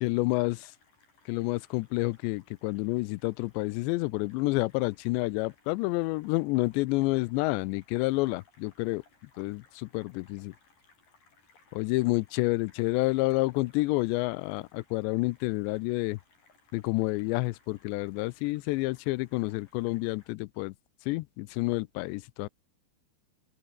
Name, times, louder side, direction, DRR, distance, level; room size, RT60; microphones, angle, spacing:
voice 1, 0.0-0.7 1.3-9.0 9.4-10.5 11.7-16.2 16.7-20.8 21.1-22.5, left 22 dB, 85° left, 2.8 m, -29 dB
sound 1, 0.6-20.3, left 4 dB, 50° left, 8.9 m, -64 dB
open air
omnidirectional pair, 5.0 m